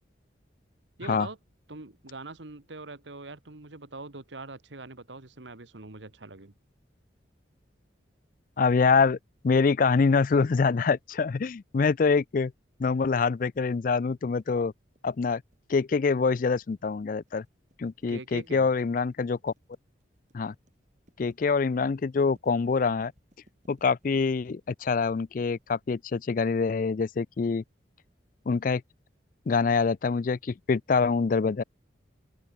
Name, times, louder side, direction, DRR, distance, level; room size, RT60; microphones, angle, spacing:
voice 1, 1.0-1.4 1.7-6.5 18.1-18.7, right 3 dB, 70° right, 1.6 m, -43 dB
voice 2, 8.6-9.2 9.4-12.5 12.8-14.7 15.0-15.4 15.7-17.4 17.8-19.5 20.3-20.5 21.2-23.1 23.7-27.6 28.5-28.8 29.5-31.6, left 4 dB, 45° left, 0.4 m, -25 dB
sound 1, 14.4-25.9, equal, 40° right, 5.3 m, -65 dB
open air
head